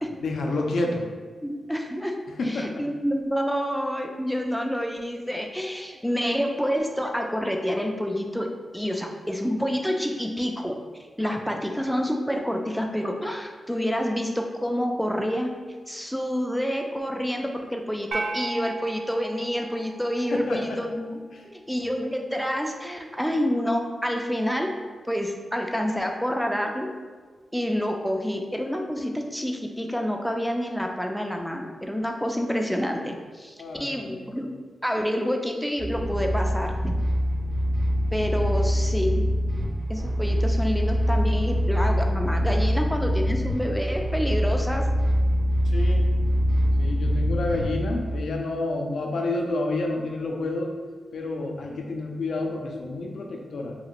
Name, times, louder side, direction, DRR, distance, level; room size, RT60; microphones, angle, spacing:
voice 1, 0.2-1.0 2.4-2.8 20.3-20.8 21.3-21.4 33.6-34.3 45.7-46.1 46.8-50.7 51.1-53.8, left 2 dB, 80° left, 1 dB, 0.4 m, -29 dB
voice 2, 1.4-2.1 2.4-10.8 11.2-15.5 15.9-21.2 21.4-24.8 25.1-26.9 27.5-34.5 34.8-36.9 38.1-39.3 39.9-44.9, equal, ahead, 2 dB, 0.3 m, -28 dB
sound 1, 18.1-20.6, right 2 dB, 85° right, 0.3 m, -35 dB
sound 2, 35.8-48.2, equal, 45° right, 0.6 m, -24 dB
2.9 x 2.4 x 2.9 m, 1.5 s
cardioid pair, 80°, 0 cm